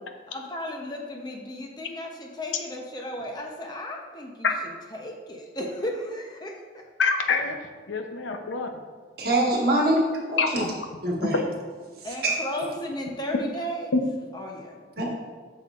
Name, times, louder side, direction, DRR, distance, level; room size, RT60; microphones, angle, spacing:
voice 1, 0.3-6.8 10.5-10.7 12.0-13.9 14.3-14.8, left 1 dB, 20° left, 1 dB, 0.7 m, -35 dB
voice 2, 7.0-7.6 7.9-8.7 10.4-10.7 13.9-14.0, left 4 dB, 80° left, 5 dB, 0.7 m, -25 dB
voice 3, 9.2-10.6 11.0-11.4 12.2-12.4 15.0-15.1, right 1 dB, 55° right, -2 dB, 1.3 m, -24 dB
7.8 x 6.4 x 2.5 m, 1.5 s
head